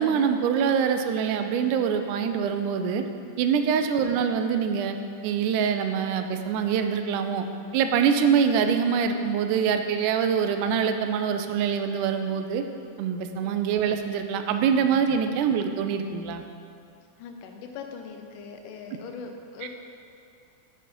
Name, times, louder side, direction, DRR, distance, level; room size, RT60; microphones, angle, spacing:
voice 1, 0.0-3.0 3.4-5.0 5.2-7.5 7.7-12.6 13.0-16.4 19.6-19.7, right 7 dB, 85° right, 7 dB, 2.0 m, -24 dB
voice 2, 17.2-19.7, left 5 dB, 90° left, 4 dB, 2.3 m, -41 dB
7.0 x 5.3 x 5.2 m, 2.4 s
omnidirectional pair, 3.6 m